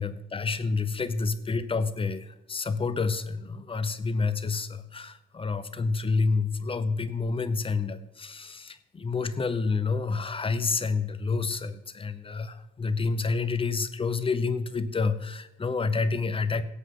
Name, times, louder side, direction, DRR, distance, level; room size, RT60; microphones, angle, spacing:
voice 1, 0.0-16.6, left 4 dB, 25° left, 13 dB, 0.8 m, -29 dB
17.0 x 8.1 x 3.9 m, 0.94 s
cardioid pair, 90°, 20 cm